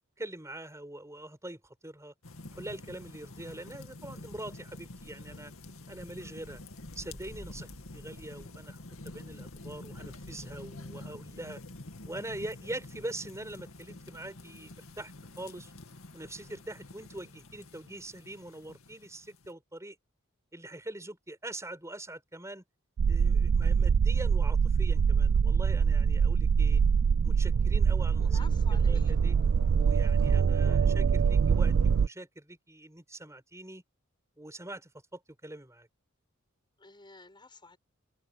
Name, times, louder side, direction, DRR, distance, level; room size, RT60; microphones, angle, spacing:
voice 1, 0.2-2.1 2.5-5.5 5.9-6.6 6.9-11.6 12.0-15.7 16.1-20.0 20.5-22.6 23.1-26.8 27.2-28.4 28.9-29.4 29.7-33.8 34.4-35.9, right 1 dB, 15° right, 6.4 m, -43 dB
sound 1, 2.2-19.5, left 2 dB, 80° left, 2.3 m, -47 dB
sound 2, 23.0-32.1, right 6 dB, 65° right, 0.4 m, -24 dB
voice 2, 28.2-29.2 36.8-37.8, left 3 dB, 25° left, 6.0 m, -50 dB
head